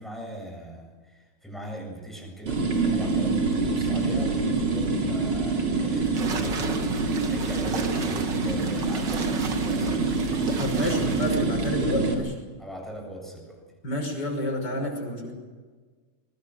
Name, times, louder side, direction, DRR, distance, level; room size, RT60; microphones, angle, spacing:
voice 1, 0.0-2.7 2.9-6.7 7.3-10.0 10.8-11.1 12.6-13.6, right 1 dB, ahead, 0 dB, 7.7 m, -39 dB
sound 1, 2.5-12.1, right 3 dB, 80° right, 4.5 m, -26 dB
sound 2, 6.1-11.4, right 5 dB, 60° right, 2.4 m, -36 dB
voice 2, 10.6-12.3 13.8-15.3, left 1 dB, 50° left, 2 dB, 6.6 m, -29 dB
25.5 x 23.0 x 6.5 m, 1.5 s
omnidirectional pair, 2.3 m